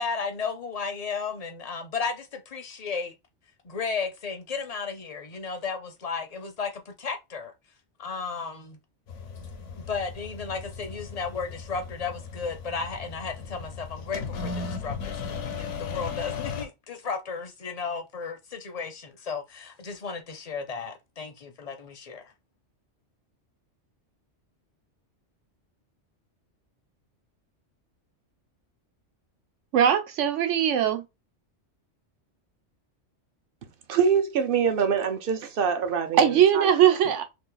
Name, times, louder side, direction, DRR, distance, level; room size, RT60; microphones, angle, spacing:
voice 1, 0.0-3.1 3.6-7.5 8.0-8.8 9.8-22.2, left 5 dB, 45° left, 0.6 m, -34 dB
sound 1, 9.1-16.7, left 5 dB, 80° left, 1.1 m, -36 dB
voice 2, 29.7-31.0 36.2-37.2, right 9 dB, 85° right, 1.0 m, -20 dB
voice 3, 33.9-36.7, right 6 dB, 55° right, 0.7 m, -25 dB
2.8 x 2.5 x 3.8 m
omnidirectional pair, 1.2 m